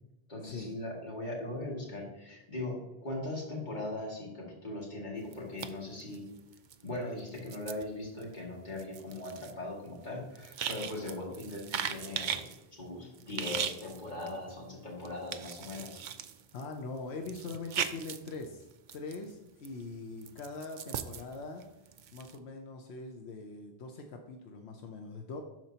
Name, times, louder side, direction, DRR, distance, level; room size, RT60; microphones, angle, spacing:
voice 1, 0.3-6.3 6.8-12.4 12.8-16.0, left 2 dB, 45° left, -3 dB, 2.3 m, -39 dB
sound 1, 5.2-6.9 7.2-12.6 13.1-14.6 15.0-19.3 19.7-22.4, right 8 dB, 60° right, 0.6 m, -39 dB
voice 2, 16.5-18.6 18.9-21.6 22.1-25.4, left 3 dB, 85° left, 3 dB, 1.0 m, -42 dB
12.5 x 4.5 x 2.8 m, 0.98 s
omnidirectional pair, 1.1 m